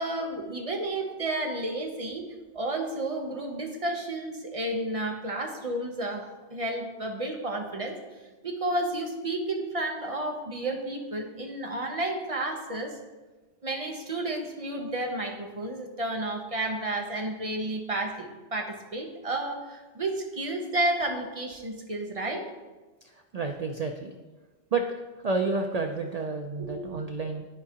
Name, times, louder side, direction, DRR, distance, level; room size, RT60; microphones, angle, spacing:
voice 1, 0.0-8.0 8.4-13.0 13.6-22.4 26.6-26.9, right 2 dB, 35° right, 2 dB, 0.7 m, -31 dB
voice 2, 23.0-24.2 24.7-24.9 25.2-27.5, right 3 dB, 75° right, 4 dB, 0.3 m, -30 dB
12.0 x 4.7 x 2.9 m, 1.2 s
omnidirectional pair, 1.3 m